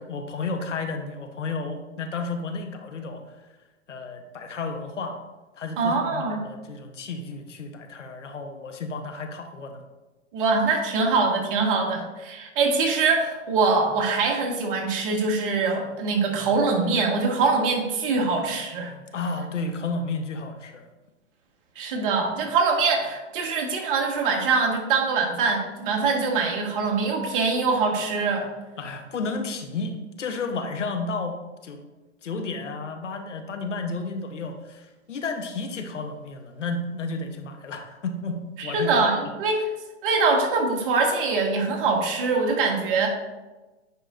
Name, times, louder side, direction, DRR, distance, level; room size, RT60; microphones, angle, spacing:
voice 1, 0.0-3.4 3.9-5.2 5.6-9.8 19.1-20.8 28.8-31.8 32.2-39.1, left 3 dB, 85° left, 5 dB, 1.0 m, -32 dB
voice 2, 5.8-6.4 10.3-18.9 21.7-28.4 38.6-39.7 40.0-43.1, right 4 dB, 50° right, 1 dB, 1.5 m, -23 dB
9.4 x 4.8 x 2.5 m, 1.2 s
hypercardioid pair, 115°, 36 cm